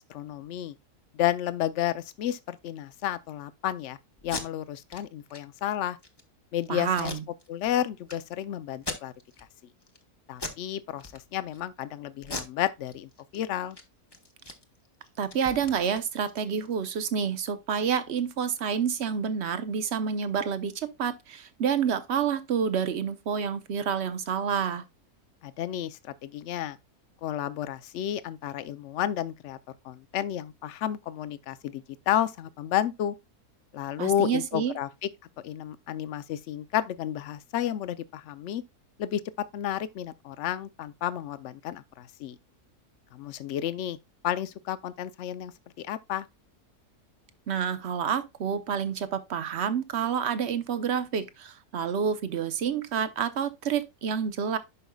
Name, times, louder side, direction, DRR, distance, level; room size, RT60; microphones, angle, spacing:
voice 1, 0.1-0.7 1.1-4.0 4.2-6.0 6.5-7.2 7.5-9.1 10.3-13.8 25.4-26.8 27.2-29.6 29.8-33.2 33.7-35.1 35.4-38.6 39.0-39.2 39.5-42.4 43.1-44.0 44.2-45.5 45.8-46.3, left 11 dB, 60° left, 0.8 m, -31 dB
Packing tape duct tape, 4.2-4.4 4.9-5.0 5.3-5.4 5.8-6.2 6.9-7.7 8.1-8.2 8.7-9.4 9.8-10.0 10.4-10.7 11.0-11.6 12.2-13.4 13.7-13.8 14.1-16.7, left 2 dB, 20° left, 0.8 m, -39 dB
voice 2, 6.7-7.2 15.2-24.8 34.0-34.7 47.5-54.6, right 7 dB, 50° right, 0.9 m, -28 dB
11.0 x 5.2 x 2.3 m
omnidirectional pair, 1.6 m